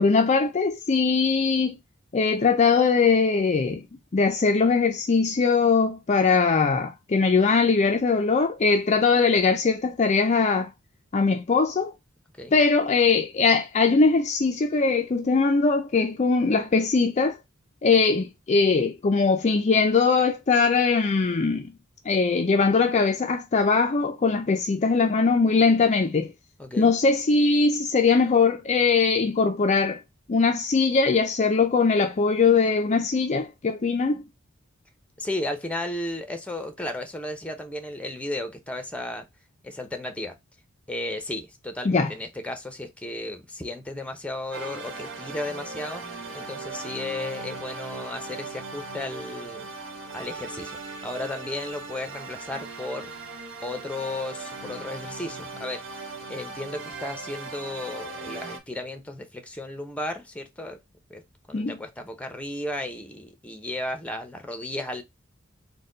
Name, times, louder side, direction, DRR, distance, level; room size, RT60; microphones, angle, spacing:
voice 1, 0.0-1.8 2.1-3.8 4.1-10.7 11.1-11.9 12.5-17.4 17.8-21.7 22.1-26.3 26.8-30.0 30.3-34.2 41.8-42.1 61.5-61.8, left 4 dB, 35° left, 0.4 m, -21 dB
voice 2, 26.6-26.9 35.2-39.3 39.6-40.4 40.9-46.0 46.3-49.7 50.1-53.1 53.6-60.8 61.1-61.2 61.5-65.0, left 1 dB, 5° left, 0.7 m, -34 dB
sound 1, 44.5-58.6, right 3 dB, 65° right, 1.4 m, -38 dB
4.1 x 2.2 x 3.8 m
head